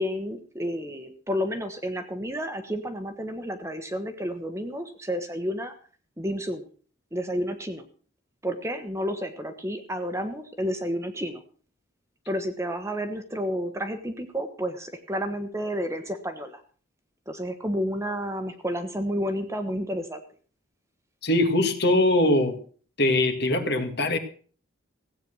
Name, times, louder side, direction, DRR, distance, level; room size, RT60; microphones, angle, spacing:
voice 1, 0.0-5.7 6.2-6.7 7.1-7.8 8.4-11.4 12.3-16.6 17.3-20.2, equal, 15° right, 8 dB, 1.3 m, -31 dB
voice 2, 21.2-22.6 23.0-24.2, left 1 dB, 55° left, 7 dB, 2.0 m, -22 dB
16.5 x 8.9 x 6.2 m, 0.43 s
head